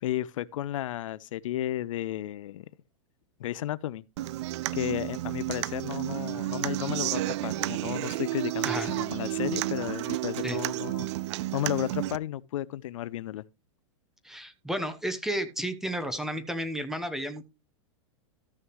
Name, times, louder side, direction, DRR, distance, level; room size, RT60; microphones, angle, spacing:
voice 1, 0.0-2.7 3.4-4.0 4.7-11.1 11.5-13.4, left 13 dB, 80° left, 0.5 m, -33 dB
Human voice / Acoustic guitar, 4.2-12.2, right 16 dB, 60° right, 0.4 m, -31 dB
voice 2, 14.2-17.4, right 1 dB, ahead, 0.9 m, -32 dB
14.0 x 6.5 x 3.1 m
hypercardioid pair, 135°, 17 cm